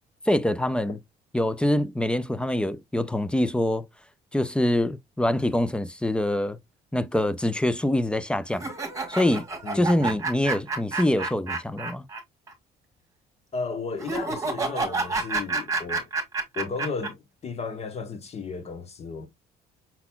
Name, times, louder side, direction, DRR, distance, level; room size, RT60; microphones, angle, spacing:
voice 1, 0.3-1.0 1.3-3.8 4.3-6.6 6.9-8.7 9.1-9.5 9.7-12.0, left 1 dB, 5° left, 0.4 m, -25 dB
sound 1, 8.5-12.2 12.5-12.6 14.0-17.1, right 3 dB, 20° right, 1.5 m, -29 dB
voice 2, 9.6-10.2 13.5-16.1 16.5-19.3, left 4 dB, 40° left, 1.2 m, -34 dB
5.8 x 4.0 x 2.3 m
cardioid pair, 110°, 17 cm